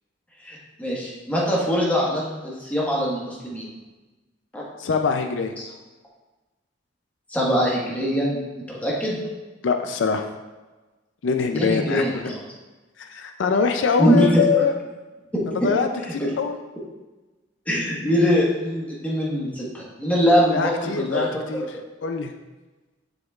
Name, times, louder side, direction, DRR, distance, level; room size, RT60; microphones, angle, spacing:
voice 1, 0.4-3.6 4.5-4.6 5.6-5.7 7.3-8.4 8.7-9.2 11.5-12.4 14.0-14.6 15.3-15.4 16.2-16.3 17.6-21.8, equal, 10° left, -5 dB, 1.5 m, -23 dB
voice 2, 4.8-5.5 9.6-10.3 11.2-12.0 13.0-14.7 15.5-15.9 16.1-16.6 20.5-21.7 22.0-22.3, left 5 dB, 75° left, 6 dB, 0.4 m, -23 dB
7.7 x 6.3 x 2.4 m, 1.2 s
head